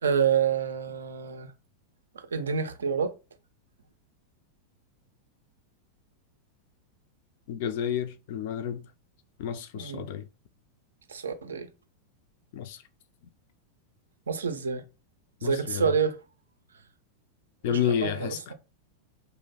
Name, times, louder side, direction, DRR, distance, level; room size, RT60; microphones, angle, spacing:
voice 1, 0.0-1.5 2.1-3.1 9.7-10.1 11.1-11.7 14.3-14.8 15.4-16.2 17.7-18.5, right 6 dB, 70° right, 0.4 m, -28 dB
voice 2, 7.5-8.8 9.4-10.3 12.5-12.8 15.4-15.8 17.6-18.5, left 9 dB, 50° left, 0.4 m, -30 dB
2.7 x 2.0 x 3.7 m
figure-of-eight pair, 90°, 0 cm